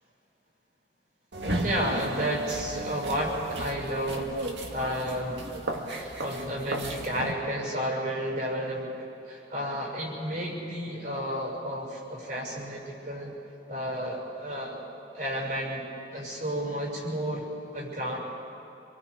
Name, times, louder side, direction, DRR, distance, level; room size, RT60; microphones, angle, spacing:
sound 1, 1.3-7.3, right 1 dB, 70° right, 1.9 m, -34 dB
voice 1, 1.6-4.3 4.7-5.4 6.0-8.9 9.3-13.3 13.7-14.8 15.1-15.8 16.1-17.4 17.7-18.2, equal, 50° right, -1 dB, 6.4 m, -32 dB
26.5 x 21.5 x 5.0 m, 2.9 s
head